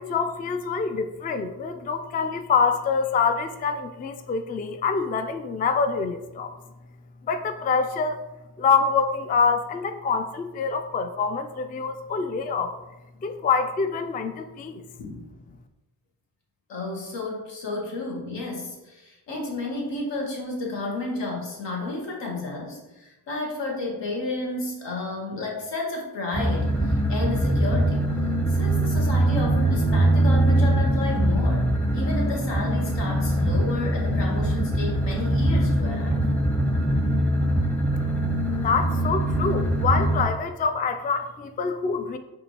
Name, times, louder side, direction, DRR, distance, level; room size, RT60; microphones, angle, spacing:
voice 1, 0.0-6.5 7.3-8.2 8.6-12.7 13.2-14.8 38.6-42.2, left 5 dB, 20° left, 8 dB, 0.3 m, -25 dB
voice 2, 16.7-28.0 28.5-36.2, left 2 dB, 75° left, -1 dB, 1.2 m, -32 dB
sound 1, 26.3-40.2, right 1 dB, 5° left, 0.7 m, -22 dB
5.0 x 2.6 x 2.9 m, 1.0 s
supercardioid pair, 40°, 44 cm